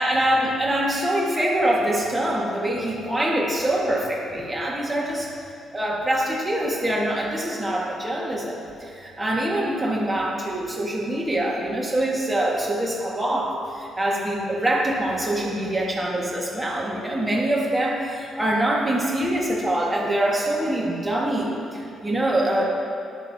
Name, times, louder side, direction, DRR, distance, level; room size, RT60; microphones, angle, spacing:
voice 1, 0.0-5.3 5.7-22.6, right 1 dB, 20° right, -4 dB, 2.1 m, -24 dB
19.5 x 7.0 x 3.0 m, 2.5 s
cardioid pair, 80°, 0 cm